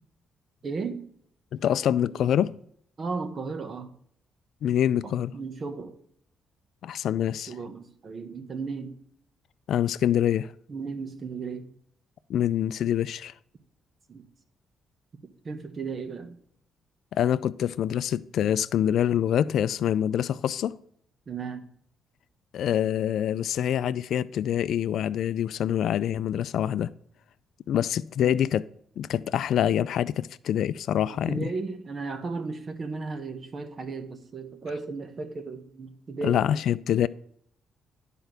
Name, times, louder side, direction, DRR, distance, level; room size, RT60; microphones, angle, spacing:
voice 1, 0.6-1.0 3.0-3.9 5.3-6.0 7.5-9.0 10.7-11.7 14.1-14.2 15.4-16.4 21.3-21.7 28.2-28.5 31.1-36.4, right 4 dB, 45° right, 1.3 m, -35 dB
voice 2, 1.5-2.6 4.6-5.3 6.8-7.5 9.7-10.5 12.3-13.3 17.1-20.8 22.5-26.9 27.7-28.6 29.0-31.5 36.2-37.1, left 10 dB, 70° left, 0.3 m, -25 dB
10.0 x 4.5 x 6.8 m
cardioid pair, 90°, 0 cm